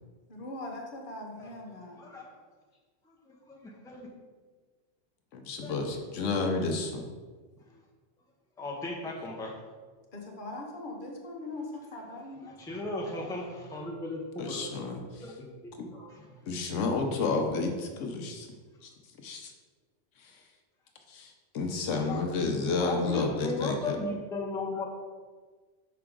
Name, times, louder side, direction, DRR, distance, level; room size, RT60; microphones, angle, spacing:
voice 1, 0.3-2.1 10.1-12.5, left 2 dB, 45° left, 0 dB, 1.1 m, -41 dB
voice 2, 2.0-2.3 3.2-4.1 5.6-5.7 7.7-7.8 8.6-9.5 12.6-14.7 15.2-16.3 21.9-22.2 22.8-24.9, left 2 dB, 5° left, -2 dB, 0.7 m, -36 dB
voice 3, 5.3-7.0 14.4-15.3 16.5-18.5 18.8-18.9 19.2-19.5 20.2-20.4 21.1-24.0, left 3 dB, 80° left, 4 dB, 1.0 m, -31 dB
6.0 x 4.6 x 3.7 m, 1.4 s
omnidirectional pair, 1.3 m